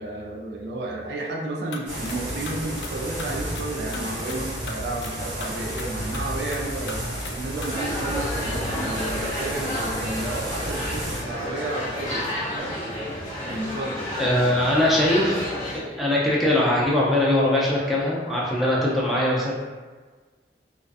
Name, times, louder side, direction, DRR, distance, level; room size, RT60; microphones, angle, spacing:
voice 1, 0.0-12.2 12.5-12.8 13.5-14.0, right 2 dB, 65° right, -1 dB, 0.4 m, -32 dB
sound 1, 1.7-2.2 2.5-2.9 3.2-4.4 4.7-5.1 5.4-5.9 6.1-6.6 6.9-7.3 7.6-7.7, left 4 dB, 80° left, 0.3 m, -37 dB
sound 2, 1.9-11.2, right 1 dB, 90° right, 0.9 m, -32 dB
sound 3, 7.7-15.8, left 1 dB, 20° left, 0.7 m, -31 dB
voice 2, 14.2-15.5 15.7-19.5, left 1 dB, ahead, -6 dB, 0.3 m, -21 dB
2.4 x 2.3 x 2.4 m, 1.4 s
head